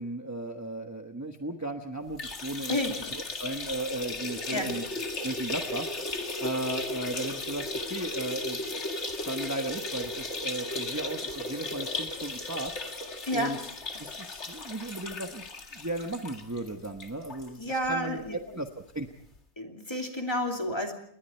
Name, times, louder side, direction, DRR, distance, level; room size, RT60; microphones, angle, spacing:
voice 1, 0.0-2.8 3.1-4.8 5.2-5.9 6.4-8.6 9.3-13.1 13.3-13.7 14.0-19.1, right 2 dB, 15° right, 4 dB, 1.2 m, -36 dB
sound 1, 2.1-17.5 17.8-17.9 18.3-18.4 19.4-19.5, left 2 dB, 80° left, 2.3 m, -36 dB
voice 2, 17.6-18.4 19.6-20.9, equal, 25° left, 2 dB, 2.9 m, -30 dB
28.5 x 21.0 x 4.5 m, 0.66 s
omnidirectional pair, 1.2 m